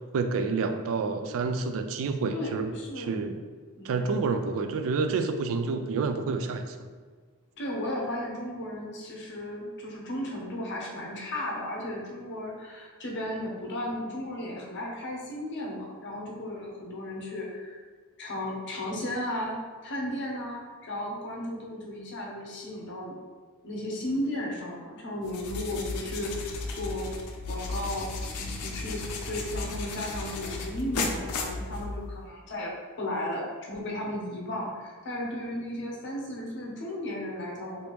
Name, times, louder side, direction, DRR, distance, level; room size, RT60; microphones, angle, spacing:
voice 1, 0.0-2.7 3.0-3.4 3.8-6.8, right 4 dB, 65° right, 8 dB, 0.3 m, -29 dB
voice 2, 2.3-3.1 3.8-4.1 7.6-17.8 18.2-23.2 23.6-27.1 27.5-32.7 33.0-37.9, left 1 dB, 55° left, -2 dB, 0.7 m, -35 dB
sound 1, 25.2-32.2, left 3 dB, 85° left, 0.5 m, -35 dB
3.3 x 2.6 x 3.0 m, 1.5 s
head